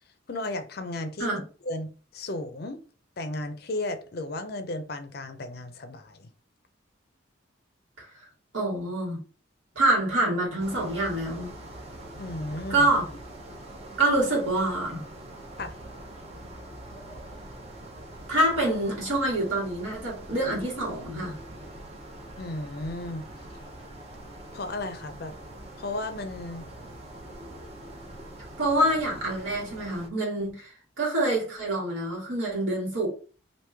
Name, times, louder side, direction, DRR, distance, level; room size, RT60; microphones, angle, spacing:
voice 1, 0.3-2.8 3.2-6.3 12.2-12.9 15.6-15.8 22.4-23.3 24.5-25.3 25.8-26.7, left 2 dB, 50° left, 0.5 m, -34 dB
voice 2, 8.5-9.2 9.7-11.5 12.7-13.1 14.0-15.0 18.3-21.4 28.6-33.1, right 1 dB, 85° right, 1.7 m, -26 dB
sound 1, 10.6-30.1, right 1 dB, 35° right, 0.6 m, -43 dB
3.1 x 2.6 x 3.4 m
head